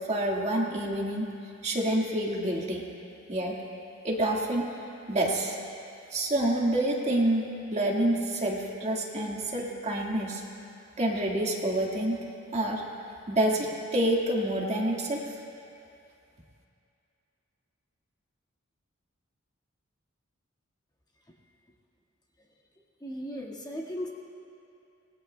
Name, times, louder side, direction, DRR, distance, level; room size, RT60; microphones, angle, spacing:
voice 1, 0.1-1.3 1.6-2.8 3.3-3.6 4.0-4.7 5.1-5.6 6.1-7.4 7.7-10.4 11.0-12.2 12.5-12.8 13.3-15.3, right 1 dB, 35° right, -1 dB, 1.7 m, -27 dB
voice 2, 23.0-24.1, equal, 20° left, -4 dB, 1.6 m, -36 dB
25.5 x 20.0 x 2.2 m, 2.6 s
head